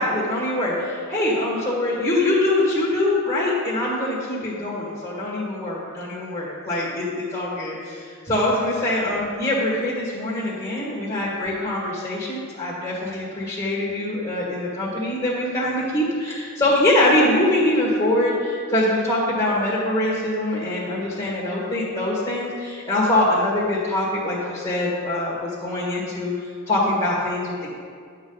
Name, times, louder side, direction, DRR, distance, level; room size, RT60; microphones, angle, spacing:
voice 1, 0.0-26.3 26.7-27.7, left 1 dB, 25° left, -7 dB, 1.9 m, -23 dB
10.5 x 7.4 x 4.0 m, 2.1 s
head